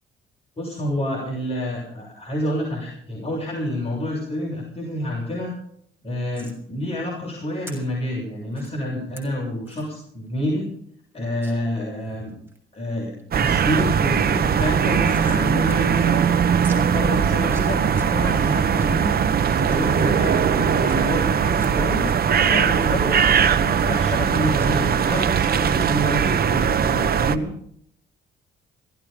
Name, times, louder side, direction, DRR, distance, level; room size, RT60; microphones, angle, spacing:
voice 1, 0.6-5.5 6.0-10.6 11.1-12.3 12.7-16.3 16.7-19.2 19.4-27.5, left 1 dB, 30° left, -2 dB, 6.8 m, -28 dB
sound 1, 6.3-6.6 7.7-7.8 8.5-8.7 9.2-9.3 9.7-9.9 10.3-10.4 10.6-10.7 11.4-11.5 12.0-12.6 13.0-13.4 13.7-13.8 14.1-15.4 15.7-15.8 16.1-16.2 16.6-16.8 17.3-18.1 18.4-18.9 19.3-21.0 21.5-22.1 22.4-24.3 24.6-24.7, right 2 dB, 10° right, 6.7 m, -45 dB
sound 2, 13.3-27.4, right 7 dB, 50° right, 1.3 m, -20 dB
17.0 x 16.5 x 5.2 m, 0.68 s
cardioid pair, 90°, 20 cm